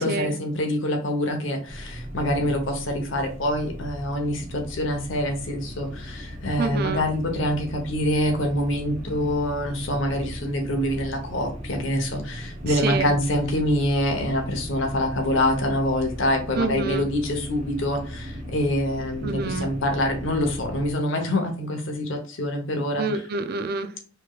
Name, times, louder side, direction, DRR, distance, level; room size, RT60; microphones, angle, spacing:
voice 1, 0.0-23.1, left 1 dB, 70° left, 1.0 m, -25 dB
sound 1, 1.7-20.9, equal, 35° right, 0.9 m, -37 dB
voice 2, 6.6-7.0 12.7-13.1 16.6-17.1 19.2-19.7 23.0-24.1, right 3 dB, 50° right, 0.4 m, -27 dB
4.4 x 3.1 x 2.4 m
head